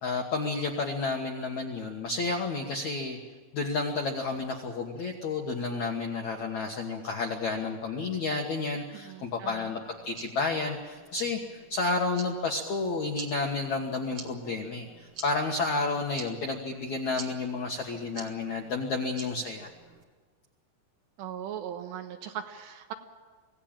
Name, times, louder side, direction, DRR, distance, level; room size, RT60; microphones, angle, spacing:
voice 1, 0.0-3.2 3.5-11.4 11.7-19.7, left 3 dB, 70° left, 1 dB, 1.8 m, -31 dB
voice 2, 8.9-9.7 21.2-22.9, right 9 dB, 70° right, 6 dB, 3.1 m, -39 dB
sound 1, 9.8-20.0, right 5 dB, 55° right, 1.6 m, -49 dB
24.0 x 17.0 x 8.9 m, 1.5 s
omnidirectional pair, 5.5 m